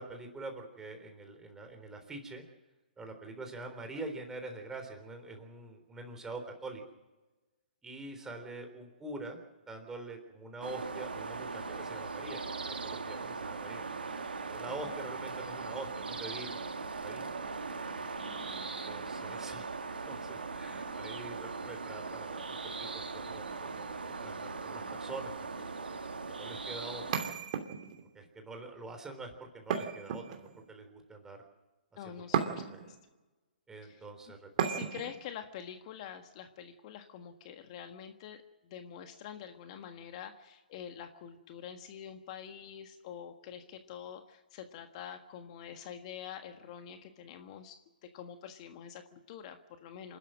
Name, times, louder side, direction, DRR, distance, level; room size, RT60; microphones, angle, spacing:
voice 1, 0.0-2.4 3.0-6.8 7.8-9.4 9.7-13.9 14.4-16.6 17.0-17.3 18.5-19.7 20.1-22.9 23.1-27.2 28.1-31.4 32.0-32.8 33.7-34.8, right 2 dB, 10° right, 4 dB, 3.7 m, -45 dB
sound 1, 10.6-27.3, right 4 dB, 85° right, 2.0 m, -39 dB
voice 2, 14.6-15.0 18.3-18.8 32.0-33.0 33.8-34.0 34.6-50.2, left 9 dB, 40° left, 7 dB, 1.6 m, -46 dB
sound 2, 27.1-28.1 29.7-30.7 32.3-33.0 34.6-35.2, right 8 dB, 45° right, 2.9 m, -34 dB
27.0 x 13.0 x 7.7 m, 1.1 s
hypercardioid pair, 135°, 5 cm